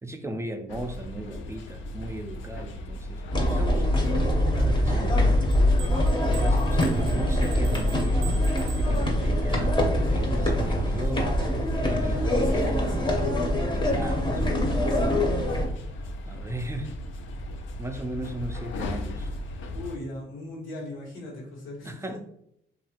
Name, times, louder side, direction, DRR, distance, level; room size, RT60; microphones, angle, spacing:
voice 1, 0.0-5.4 6.4-11.3 11.8-13.1 13.7-14.4 16.3-17.0 17.8-19.3 21.8-22.2, right 1 dB, 15° right, 0.3 m, -36 dB
sound 1, 0.7-20.0, left 1 dB, 75° left, 0.4 m, -38 dB
sound 2, 3.3-15.7, left 1 dB, 25° left, 0.7 m, -24 dB
sound 3, 5.5-9.5, right 6 dB, 85° right, 0.5 m, -44 dB
voice 2, 12.1-13.0 13.4-15.0 19.7-22.2, left 2 dB, 90° left, 1.1 m, -38 dB
2.8 x 2.3 x 2.8 m
cardioid pair, 90°, 20 cm